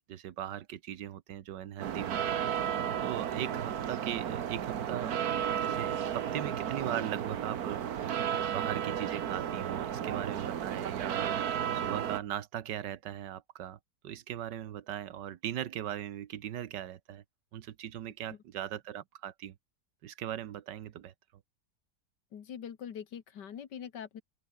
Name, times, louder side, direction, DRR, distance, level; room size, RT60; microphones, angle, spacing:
voice 1, 0.1-5.2 5.6-7.8 8.1-17.2 17.5-19.6 20.0-21.1, right 11 dB, 80° right, 1.6 m, -39 dB
sound 1, 1.8-12.2, right 9 dB, 60° right, 1.5 m, -33 dB
voice 2, 22.3-24.2, left 8 dB, 75° left, 2.0 m, -43 dB
open air
omnidirectional pair, 1.9 m